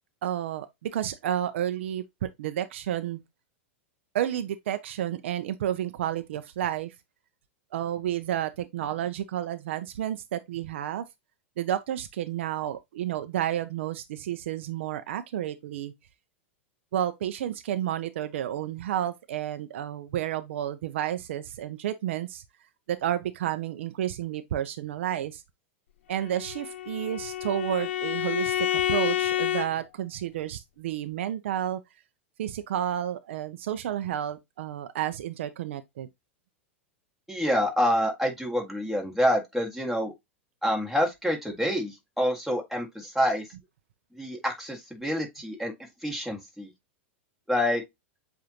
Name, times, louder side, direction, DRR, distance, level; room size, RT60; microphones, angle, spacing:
voice 1, 0.2-3.2 4.1-6.9 7.7-11.1 11.6-15.9 16.9-22.4 22.9-25.4 26.1-31.8 32.4-36.1, right 11 dB, 70° right, 0.5 m, -31 dB
Bowed string instrument, 26.2-29.7, left 12 dB, 70° left, 0.5 m, -29 dB
voice 2, 37.3-40.1 40.6-43.4 44.2-45.7 46.0-46.7 47.5-47.8, equal, ahead, 1.8 m, -27 dB
7.6 x 2.5 x 2.8 m
hypercardioid pair, 100°, 7 cm